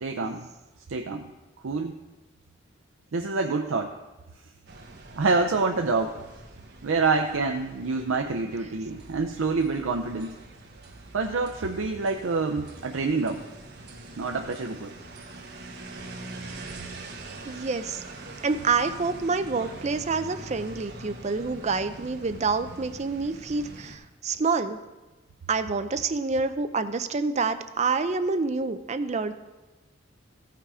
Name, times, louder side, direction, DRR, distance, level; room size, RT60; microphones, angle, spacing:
voice 1, 0.0-0.5 0.9-1.3 1.6-2.0 3.1-3.9 5.2-6.2 6.8-10.3 11.1-13.5 14.2-14.9, right 4 dB, 85° right, 4 dB, 0.6 m, -27 dB
sound 1, 4.7-24.0, right 2 dB, 55° right, 1.3 m, -44 dB
voice 2, 17.5-18.0 18.4-24.8 25.5-29.3, right 4 dB, 35° right, 10 dB, 0.5 m, -27 dB
15.5 x 5.7 x 4.9 m, 1.1 s
head